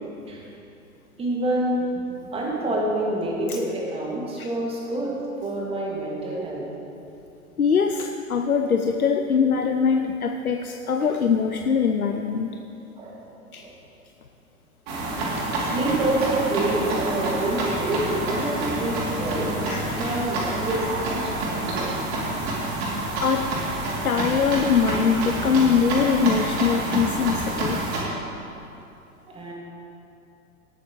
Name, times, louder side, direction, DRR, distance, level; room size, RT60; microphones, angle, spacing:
voice 1, 1.2-1.8 2.3-5.1 5.4-6.6 13.0-13.1 13.6-13.7 15.6-19.5 19.9-22.0 29.3-29.5, right 1 dB, 15° right, -3 dB, 1.9 m, -27 dB
voice 2, 7.6-12.6 13.5-13.6 19.7-20.2 23.2-23.5 24.0-27.8, left 6 dB, 80° left, 5 dB, 0.7 m, -22 dB
sound 1, 14.9-28.0, right 2 dB, 45° right, 2.7 m, -28 dB
18.0 x 8.5 x 3.0 m, 2.8 s
figure-of-eight pair, 105°, 43 cm